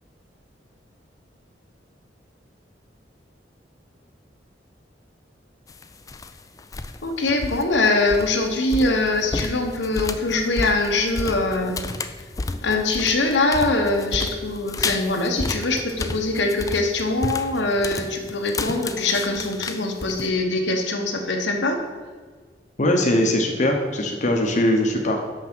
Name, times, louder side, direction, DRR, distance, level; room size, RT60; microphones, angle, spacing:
sound 1, 5.7-6.3 6.6-7.0 7.3-20.3, left 3 dB, 20° left, 0.3 m, -31 dB
voice 1, 7.0-11.8 12.6-21.8, left 2 dB, 80° left, 3 dB, 1.0 m, -23 dB
voice 2, 22.8-25.2, left 1 dB, 45° left, 2 dB, 0.8 m, -21 dB
5.9 x 5.5 x 6.1 m, 1.5 s
head